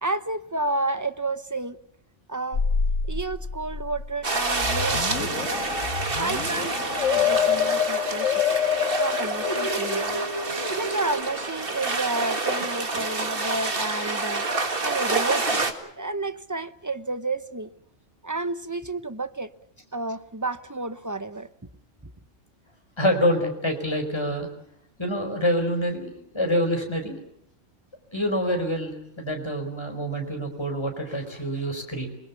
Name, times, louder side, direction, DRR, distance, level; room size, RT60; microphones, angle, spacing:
voice 1, 0.0-1.8 2.3-2.6 3.1-5.6 6.1-8.4 9.0-10.2 10.7-14.5 14.8-17.7 18.2-19.5 19.9-21.5, right 2 dB, 15° right, 0.8 m, -31 dB
sound 1, 2.5-11.2, left 6 dB, 80° left, 1.8 m, -27 dB
sound 2, 4.2-15.7, right 3 dB, 45° right, 2.2 m, -28 dB
voice 2, 23.0-24.5 25.0-27.2 28.1-32.1, equal, 20° left, 4.9 m, -26 dB
28.0 x 21.0 x 7.2 m
omnidirectional pair, 1.3 m